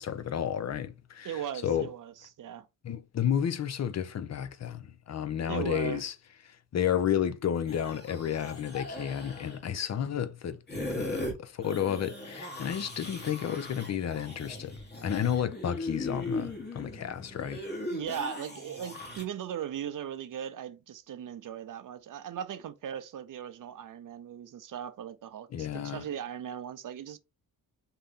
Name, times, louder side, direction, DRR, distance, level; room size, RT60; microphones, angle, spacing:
voice 1, 0.0-1.9 2.8-6.1 6.5-10.6 10.9-17.6 25.5-26.0, left 9 dB, 45° left, 0.6 m, -32 dB
voice 2, 1.2-2.1 2.4-2.7 5.5-6.0 17.9-27.2, right 9 dB, 60° right, 0.5 m, -38 dB
sound 1, 7.7-9.6 10.7-11.3 11.6-19.2, left 2 dB, 25° left, 1.1 m, -38 dB
3.7 x 2.8 x 3.5 m
wide cardioid pair, 125°, 37 cm